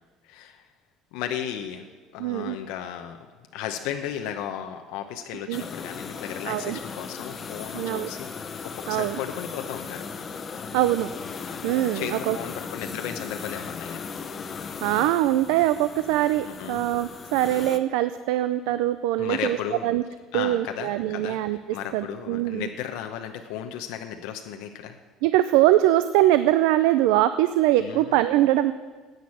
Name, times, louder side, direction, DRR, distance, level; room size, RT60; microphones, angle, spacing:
voice 1, 0.2-0.6 1.1-1.9 2.1-3.2 3.5-8.3 8.6-10.1 11.9-14.0 16.5-16.8 19.2-19.9 20.3-21.4 21.7-24.9 27.8-28.1, left 9 dB, 80° left, 5 dB, 0.8 m, -34 dB
voice 2, 2.2-2.6 5.5-5.6 6.5-6.8 7.7-8.1 8.9-9.2 10.7-11.2 11.6-12.4 14.8-20.0 20.3-22.7 25.2-28.7, right 14 dB, 85° right, 12 dB, 0.4 m, -23 dB
sound 1, 5.5-17.8, left 5 dB, 25° left, 0.7 m, -37 dB
10.5 x 8.1 x 8.5 m, 1.4 s
cardioid pair, 165°, 0 cm